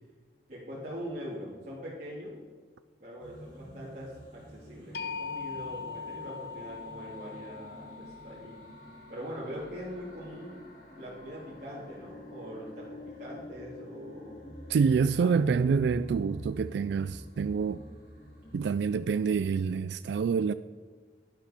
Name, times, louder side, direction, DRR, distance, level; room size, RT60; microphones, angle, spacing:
voice 1, 0.5-2.4 3.0-8.6 9.1-10.6 10.9-14.4 14.8-15.6, equal, 40° right, 2.4 m, -42 dB
sound 1, 3.2-19.6, equal, 45° left, 3.7 m, -47 dB
sound 2, 4.9-10.9, left 5 dB, 65° left, 0.8 m, -42 dB
voice 2, 14.7-17.8 18.5-20.5, right 5 dB, 80° right, 0.3 m, -27 dB
11.5 x 10.5 x 4.3 m
head